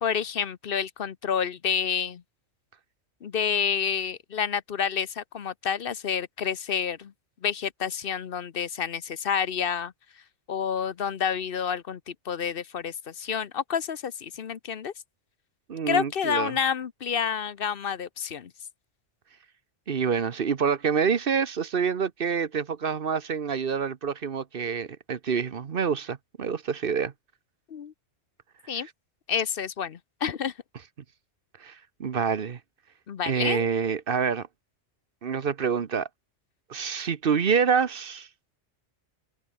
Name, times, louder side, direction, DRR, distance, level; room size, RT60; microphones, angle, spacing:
voice 1, 0.0-2.2 3.2-7.1 7.4-9.9 10.5-12.0 12.3-14.9 15.9-18.5 27.7-27.9 28.7-28.9 29.3-30.5 33.1-33.7, left 7 dB, 55° left, 0.9 m, -29 dB
voice 2, 15.7-16.6 19.9-27.1 28.8-28.9 31.6-31.7 32.0-32.6 33.2-34.5 35.2-36.1 36.7-38.3, right 6 dB, 50° right, 1.1 m, -27 dB
omnidirectional pair, 1.2 m